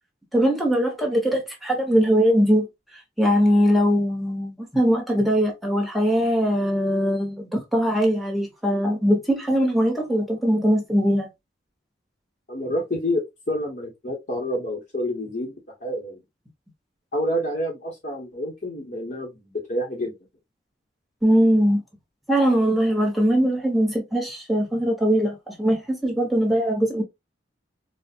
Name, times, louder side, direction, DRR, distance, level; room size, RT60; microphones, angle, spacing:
voice 1, 0.3-2.7 3.2-11.3 21.2-21.8 22.3-27.0, equal, ahead, 1.1 m, -21 dB
voice 2, 12.5-16.2 17.1-20.1, equal, 50° left, 1.2 m, -28 dB
4.2 x 2.4 x 2.4 m
head